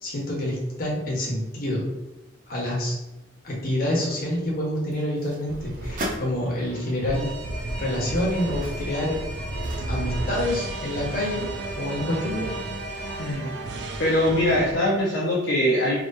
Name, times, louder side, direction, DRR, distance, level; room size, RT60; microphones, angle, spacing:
voice 1, 0.0-1.9 2.5-3.0 3.4-7.3 7.8-9.2 9.9-11.5 11.8-12.5, left 1 dB, 50° left, -3 dB, 1.1 m, -27 dB
sound 1, 4.7-6.3 7.0-7.1 7.6-10.3 10.6-10.7, equal, 45° right, 0.8 m, -38 dB
sound 2, 5.5-14.7, right 1 dB, 65° right, 0.5 m, -33 dB
Alarm, 7.1-13.3, right 1 dB, 5° left, 1.4 m, -39 dB
voice 2, 13.2-13.5 14.0-16.0, left 1 dB, 70° left, -5 dB, 0.8 m, -22 dB
3.9 x 3.0 x 2.7 m, 0.99 s
head